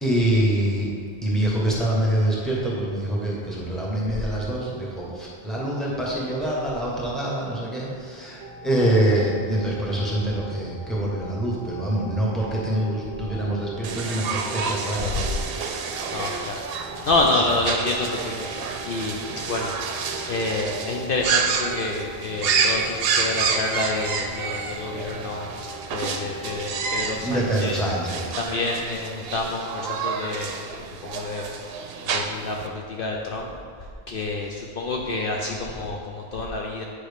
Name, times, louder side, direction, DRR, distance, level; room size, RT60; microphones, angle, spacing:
voice 1, 0.0-0.9 1.2-15.9 27.2-28.3, right 1 dB, ahead, -6 dB, 1.2 m, -25 dB
sound 1, 8.4-27.3, right 2 dB, 20° right, 0.6 m, -40 dB
sound 2, 13.8-32.7, right 5 dB, 65° right, 0.8 m, -29 dB
voice 2, 16.1-16.6 17.0-19.2 19.5-19.7 20.3-25.5 25.9-27.8 28.4-31.5 32.1-33.5 34.1-36.8, left 2 dB, 60° left, 0 dB, 0.7 m, -28 dB
8.9 x 4.8 x 3.5 m, 2.1 s
omnidirectional pair, 1.1 m